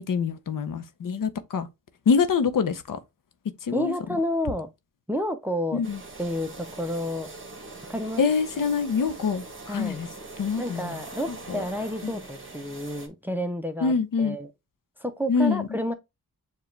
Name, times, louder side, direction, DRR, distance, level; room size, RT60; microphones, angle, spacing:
voice 1, 0.0-1.7 2.1-3.0 3.6-3.9 5.7-6.0 8.2-10.1 10.4-10.9 11.5-11.6 12.0-12.1 13.8-14.4 15.3-15.7, left 5 dB, 65° left, 0.7 m, -25 dB
voice 2, 3.7-4.7 5.1-5.8 6.2-7.3 7.9-8.2 9.6-10.0 10.6-14.5 15.0-15.9, equal, 5° right, 0.5 m, -30 dB
sound 1, 5.8-13.1, right 3 dB, 35° right, 1.2 m, -42 dB
7.0 x 2.4 x 3.1 m
wide cardioid pair, 100°, 35 cm